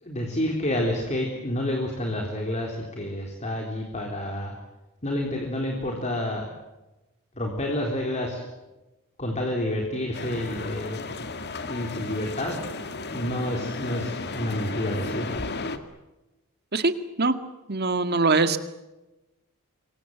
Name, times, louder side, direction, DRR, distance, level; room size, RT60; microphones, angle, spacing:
voice 1, 0.0-4.5 5.0-6.5 7.4-8.4 9.2-11.1 11.7-12.5 13.1-15.4, left 1 dB, 30° left, 1 dB, 3.8 m, -29 dB
sound 1, 10.1-15.8, left 3 dB, 50° left, 2.1 m, -34 dB
voice 2, 17.7-18.6, right 3 dB, 45° right, 9 dB, 1.9 m, -22 dB
27.5 x 23.5 x 8.0 m, 1.0 s
head